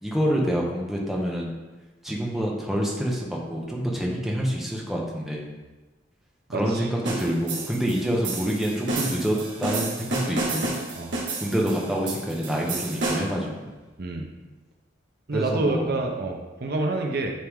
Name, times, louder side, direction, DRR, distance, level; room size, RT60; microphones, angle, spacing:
voice 1, 0.0-1.5 2.0-5.5 6.5-10.7 11.4-13.7 15.3-15.9, equal, ahead, -3 dB, 1.0 m, -27 dB
voice 2, 6.5-6.9 11.0-11.1 14.0-14.3 15.3-17.3, right 2 dB, 60° right, 2 dB, 0.7 m, -27 dB
sound 1, 7.1-13.4, right 2 dB, 75° right, 1.8 m, -31 dB
10.0 x 3.4 x 3.7 m, 1.2 s
head